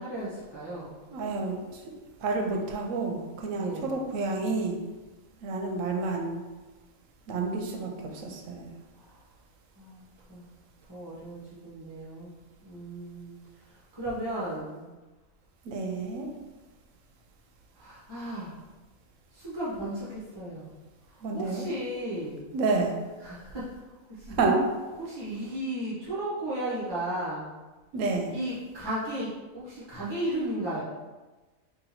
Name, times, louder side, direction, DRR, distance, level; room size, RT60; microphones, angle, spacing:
voice 1, 0.0-1.0 3.5-3.9 9.0-9.2 9.8-10.5 10.9-12.3 12.6-13.4 13.7-14.9 17.7-18.5 19.3-20.7 21.1-22.5 23.2-23.7 24.1-24.4 25.0-27.5 28.3-30.8, right 1 dB, 25° right, -8 dB, 0.6 m, -35 dB
voice 2, 1.1-1.8 2.2-4.8 5.4-6.4 7.3-8.7 15.6-16.3 21.2-21.7 22.5-23.0 24.3-24.6 27.9-28.3, right 3 dB, 75° right, 2 dB, 0.9 m, -29 dB
2.8 x 2.8 x 4.0 m, 1.2 s
omnidirectional pair, 1.4 m